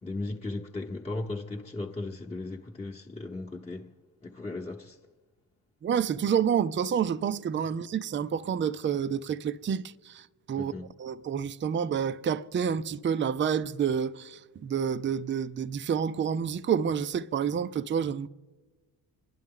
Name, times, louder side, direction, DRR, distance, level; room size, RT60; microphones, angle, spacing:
voice 1, 0.0-3.9 4.2-5.0 10.5-10.9, left 2 dB, 15° left, 1.0 m, -36 dB
voice 2, 5.8-10.7 11.0-18.3, right 7 dB, 30° right, 0.5 m, -29 dB
24.0 x 10.5 x 3.8 m
supercardioid pair, 60°, 41 cm